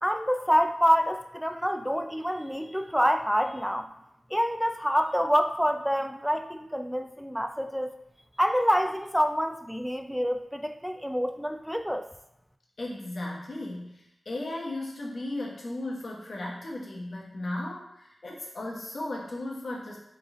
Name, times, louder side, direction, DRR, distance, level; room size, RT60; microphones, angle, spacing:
voice 1, 0.0-3.9 4.3-7.9 8.4-12.1, equal, ahead, 7 dB, 0.4 m, -27 dB
voice 2, 12.8-20.0, left 1 dB, 65° left, -3 dB, 0.9 m, -36 dB
3.8 x 3.3 x 3.6 m, 0.82 s
cardioid pair, 50°, 0 cm